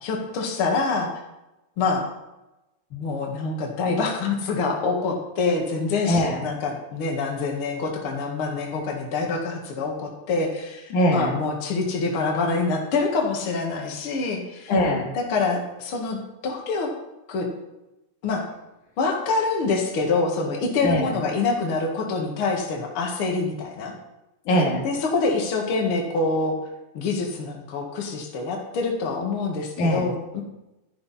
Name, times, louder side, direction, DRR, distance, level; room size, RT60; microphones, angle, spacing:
voice 1, 0.0-1.1 1.8-2.0 2.9-14.7 15.1-16.2 16.4-16.9 17.3-17.5 18.2-18.4 19.0-23.9 24.8-26.6 26.9-30.4, left 4 dB, 50° left, 0 dB, 2.5 m, -26 dB
voice 2, 6.1-6.4 10.9-11.3 14.7-15.1 20.8-21.1 24.5-24.8 29.8-30.0, equal, 85° left, 0 dB, 3.5 m, -21 dB
12.5 x 11.5 x 4.2 m, 0.96 s
omnidirectional pair, 3.4 m